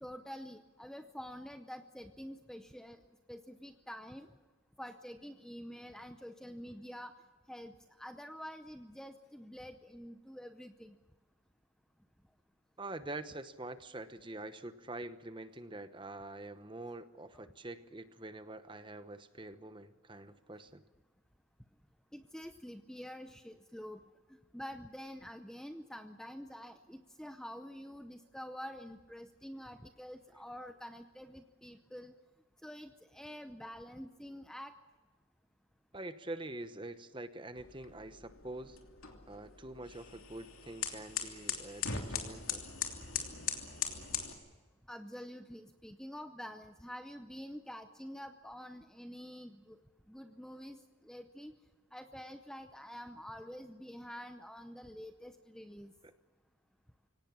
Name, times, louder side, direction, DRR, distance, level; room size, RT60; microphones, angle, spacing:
voice 1, 0.0-3.0 3.3-4.3 4.8-7.1 7.5-11.0 17.3-17.5 22.1-24.0 24.3-32.1 32.6-34.7 44.9-49.8 50.1-51.5 51.9-55.9, equal, 5° left, 7 dB, 0.6 m, -47 dB
voice 2, 12.8-20.8 35.9-38.8 39.3-42.6 56.0-56.1, right 2 dB, 20° right, 11 dB, 0.9 m, -45 dB
sound 1, 37.6-44.3, left 7 dB, 75° left, 3.0 m, -40 dB
24.0 x 18.0 x 8.6 m, 1.3 s
head